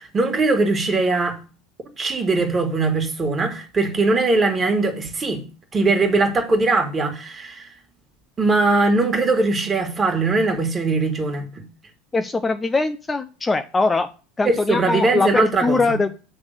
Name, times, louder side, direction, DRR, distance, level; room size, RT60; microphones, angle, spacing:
voice 1, 0.0-1.4 2.0-5.4 5.7-7.7 8.4-11.6 14.4-15.8, right 3 dB, 25° right, 1.9 m, -20 dB
voice 2, 12.1-14.1 14.4-16.1, left 3 dB, 20° left, 0.5 m, -21 dB
7.9 x 3.5 x 6.5 m
hypercardioid pair, 80°, 0 cm